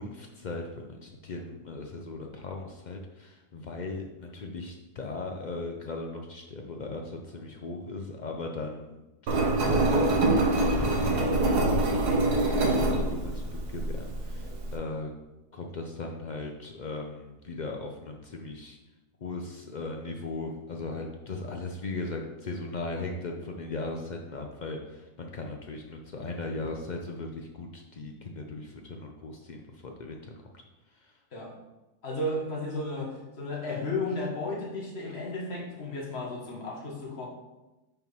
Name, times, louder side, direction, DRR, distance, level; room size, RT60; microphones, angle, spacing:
voice 1, 0.0-9.0 9.3-9.9 10.7-15.1 15.5-18.8 19.2-30.6 31.0-31.1, left 3 dB, 80° left, 2 dB, 0.4 m, -38 dB
Engine, 9.3-14.7, right 2 dB, 85° right, 1.6 m, -25 dB
voice 2, 32.0-37.3, left 2 dB, 45° left, -2 dB, 1.7 m, -33 dB
5.6 x 4.5 x 5.5 m, 1.0 s
omnidirectional pair, 1.6 m